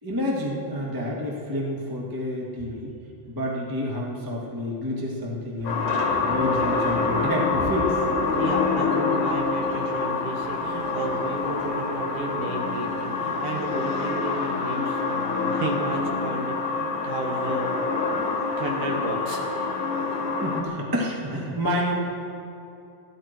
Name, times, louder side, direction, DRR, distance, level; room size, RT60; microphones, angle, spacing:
voice 1, 0.0-2.9 3.3-5.9 6.2-8.0 20.4-21.9, left 1 dB, 20° right, -3 dB, 0.5 m, -29 dB
sound 1, 5.6-13.6, right 2 dB, 85° right, 3.9 m, -42 dB
sound 2, 5.7-20.6, left 4 dB, 75° left, 3.9 m, -26 dB
voice 2, 8.4-17.7 18.1-18.3 18.6-19.8, right 2 dB, 60° right, 1 dB, 2.7 m, -33 dB
28.5 x 11.0 x 4.5 m, 2.6 s
omnidirectional pair, 4.6 m